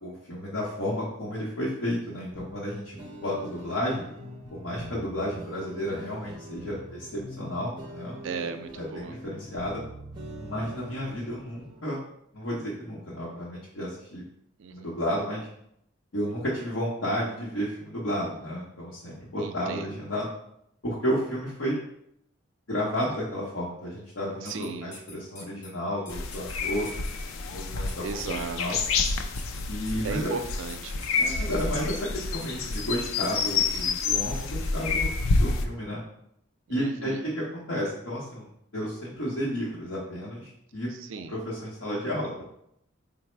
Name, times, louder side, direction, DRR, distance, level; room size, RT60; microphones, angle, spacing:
voice 1, 0.0-4.0 4.5-8.1 8.7-9.8 10.4-12.0 12.3-14.2 14.7-15.5 16.1-20.3 20.8-21.8 22.7-26.9 27.4-28.8 29.7-30.3 31.2-36.0 36.7-38.5 38.7-40.9 41.3-42.4, equal, 75° left, -6 dB, 0.8 m, -32 dB
sound 1, 2.3-11.8, equal, 20° right, 0.5 m, -43 dB
voice 2, 8.2-9.1 14.6-14.9 19.4-19.9 24.4-24.9 28.0-28.8 30.0-31.1 36.7-37.2 40.9-41.3, right 5 dB, 75° right, 9 dB, 0.3 m, -36 dB
sound 2, 24.5-25.7 26.1-26.5 26.8-27.1 27.9-28.4 29.0-30.1 30.7-31.3 31.6-31.8 32.4-32.5 32.7-33.5, left 3 dB, 35° left, 0.5 m, -46 dB
sound 3, 26.1-35.7, left 4 dB, 90° left, 0.4 m, -28 dB
4.0 x 2.0 x 4.3 m, 0.75 s
head